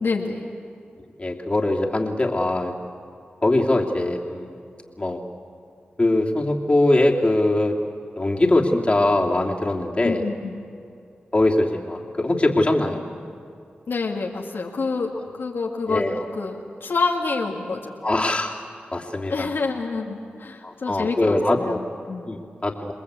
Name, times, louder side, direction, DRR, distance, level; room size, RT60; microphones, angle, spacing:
voice 1, 0.0-0.5 10.0-10.6 13.9-17.9 19.3-22.3, left 4 dB, 70° left, -1 dB, 2.2 m, -27 dB
voice 2, 1.2-2.7 3.4-4.6 5.0-5.2 6.0-7.7 8.1-10.2 11.3-13.0 15.9-16.1 18.0-18.5 18.9-19.5 20.6-21.8 22.2-22.9, left 2 dB, 30° left, -1 dB, 3.0 m, -22 dB
28.5 x 20.5 x 8.4 m, 2.4 s
cardioid pair, 45°, 4 cm